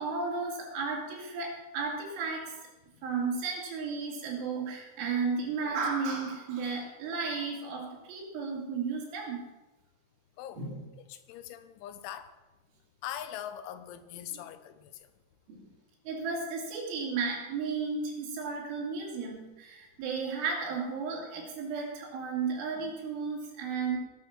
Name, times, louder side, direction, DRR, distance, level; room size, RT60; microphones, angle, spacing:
voice 1, 0.0-2.5 3.0-9.5 10.6-10.8 14.3-14.4 15.5-15.7 16.0-24.0, right 4 dB, 75° right, -2 dB, 5.1 m, -34 dB
voice 2, 11.0-12.3 13.0-15.1, left 11 dB, 80° left, 11 dB, 3.2 m, -42 dB
19.0 x 6.8 x 6.1 m, 1.1 s
omnidirectional pair, 5.6 m